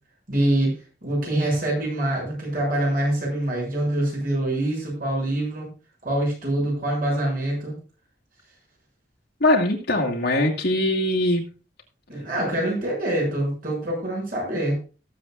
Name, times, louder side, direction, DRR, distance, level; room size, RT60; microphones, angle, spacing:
voice 1, 0.3-5.7 6.0-7.8 12.1-14.8, right 1 dB, 50° right, -2 dB, 6.8 m, -25 dB
voice 2, 9.4-11.4, left 1 dB, 60° left, 0 dB, 2.0 m, -21 dB
19.0 x 7.6 x 2.4 m, 0.35 s
head